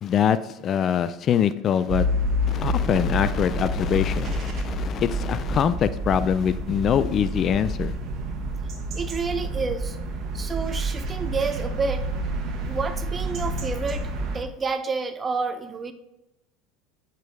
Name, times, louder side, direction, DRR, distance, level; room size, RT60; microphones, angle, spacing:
voice 1, 0.0-2.1 2.5-7.9, left 8 dB, 40° left, 14 dB, 0.4 m, -24 dB
sound 1, 1.9-14.4, equal, 45° right, 1.6 m, -28 dB
voice 2, 8.9-10.0 10.3-12.1 12.6-15.9, right 4 dB, 25° right, 10 dB, 0.8 m, -29 dB
8.0 x 6.6 x 3.5 m, 0.90 s
hypercardioid pair, 80°, 0 cm